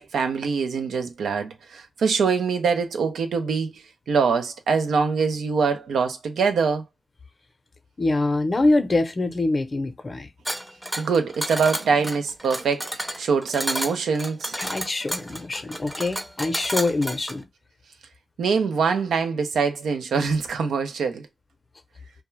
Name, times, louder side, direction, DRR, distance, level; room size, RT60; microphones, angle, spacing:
voice 1, 0.0-6.8 11.0-14.5 18.4-21.3, right 5 dB, 90° right, 0.4 m, -24 dB
voice 2, 8.0-10.3 14.6-17.4, left 2 dB, 45° left, 0.6 m, -24 dB
sound 1, 10.4-17.4, equal, 10° right, 0.5 m, -31 dB
2.3 x 2.1 x 3.0 m
cardioid pair, 45°, 0 cm